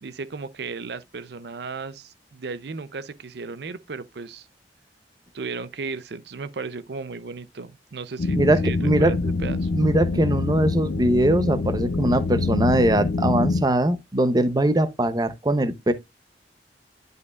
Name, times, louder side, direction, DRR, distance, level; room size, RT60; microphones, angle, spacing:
voice 1, 0.0-4.5 5.3-9.7, right 4 dB, 65° right, 0.5 m, -35 dB
sound 1, 8.2-13.6, left 3 dB, 60° left, 0.4 m, -25 dB
voice 2, 8.4-9.1 9.7-15.9, right 1 dB, 20° right, 0.7 m, -21 dB
10.5 x 5.2 x 2.3 m
head